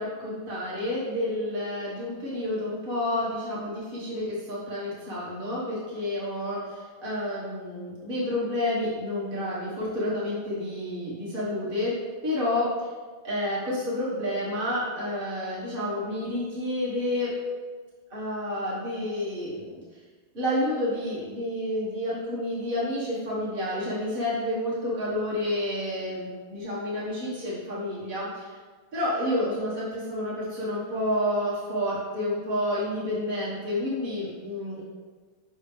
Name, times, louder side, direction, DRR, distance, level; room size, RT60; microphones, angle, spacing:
voice 1, 0.0-11.9 12.2-12.9 13.2-17.3 18.1-19.8 20.3-28.5 28.9-34.8, left 1 dB, 30° right, -8 dB, 1.5 m, -29 dB
5.5 x 3.6 x 5.0 m, 1.5 s
omnidirectional pair, 2.1 m